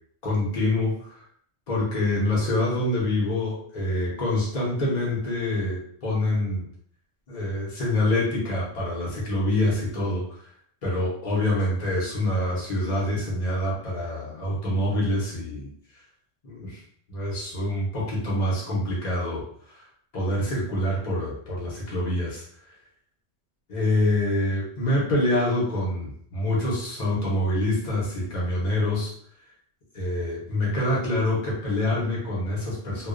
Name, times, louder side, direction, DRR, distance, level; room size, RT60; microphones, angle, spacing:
voice 1, 0.2-1.1 1.7-6.6 7.3-10.2 10.8-15.7 16.4-16.8 17.1-19.4 19.7-19.8 20.1-22.4 23.7-29.1 29.9-33.1, left 1 dB, 45° left, -5 dB, 0.9 m, -26 dB
2.4 x 2.1 x 2.4 m, 0.62 s
omnidirectional pair, 1.2 m